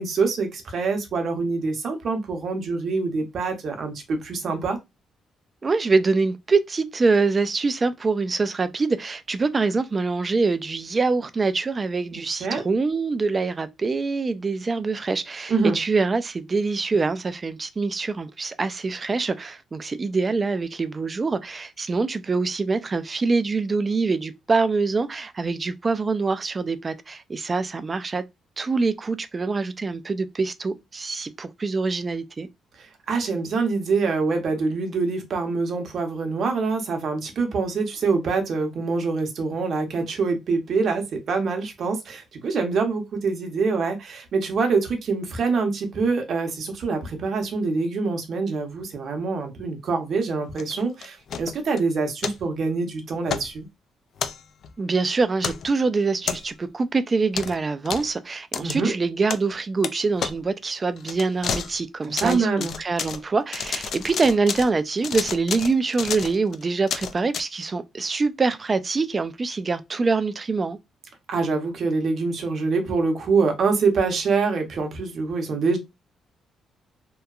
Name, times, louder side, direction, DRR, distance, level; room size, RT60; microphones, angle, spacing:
voice 1, 0.0-4.8 12.1-12.6 15.5-15.8 32.8-53.7 58.6-58.9 62.2-62.7 71.3-75.8, right 4 dB, 60° right, 0.8 m, -25 dB
voice 2, 5.6-28.2 28.6-32.5 54.8-70.8, right 4 dB, 30° right, 0.3 m, -24 dB
sound 1, 50.6-51.8 52.2-52.4 53.2-53.5 54.2-54.7 55.4-55.7 56.2-56.7 57.3-57.6 57.8-58.1 58.5-58.8 59.3-59.5 59.8-59.9 60.2-60.4 61.0-61.8 62.0-63.2 63.5-64.7 65.0-67.4, left 7 dB, 60° left, 0.3 m, -30 dB
2.8 x 2.2 x 2.3 m
cardioid pair, 90°, 0 cm